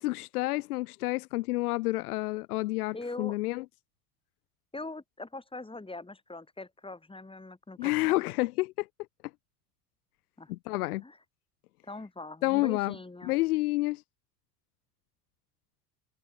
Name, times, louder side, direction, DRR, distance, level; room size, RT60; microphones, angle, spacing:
voice 1, 0.0-3.6 7.8-8.9 10.5-11.0 12.4-13.0 13.2-14.0, left 20 dB, 65° left, 1.1 m, -29 dB
voice 2, 2.9-3.4 4.7-8.2 10.4-10.5 11.0-11.2 11.8-13.3, left 2 dB, 10° left, 7.9 m, -42 dB
figure-of-eight pair, 70°, 47 cm